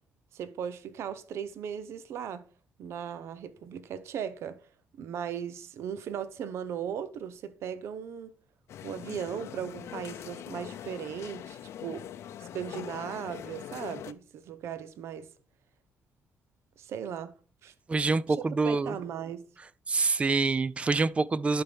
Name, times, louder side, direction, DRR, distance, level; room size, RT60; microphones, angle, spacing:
voice 1, 0.3-2.4 2.8-4.6 5.0-8.3 8.8-12.1 12.4-15.3 16.8-17.3 17.6-17.7 18.3-18.4 18.6-19.4, right 8 dB, 70° right, 0.8 m, -37 dB
sound 1, 8.7-14.1, left 10 dB, 75° left, 0.6 m, -42 dB
voice 2, 17.9-18.9 19.9-21.6, right 3 dB, 25° right, 0.5 m, -26 dB
11.5 x 4.4 x 5.3 m
cardioid pair, 115°, 5 cm